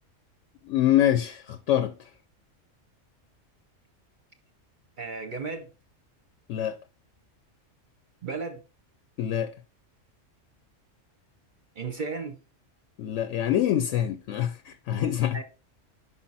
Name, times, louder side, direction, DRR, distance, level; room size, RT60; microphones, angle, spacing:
voice 1, 0.6-2.1 6.5-6.8 9.2-9.5 13.0-15.4, left 11 dB, 75° left, 0.9 m, -25 dB
voice 2, 5.0-5.7 8.2-8.6 11.8-12.4 15.3-15.4, right 4 dB, 50° right, 0.7 m, -34 dB
5.6 x 4.9 x 4.1 m
omnidirectional pair, 1.3 m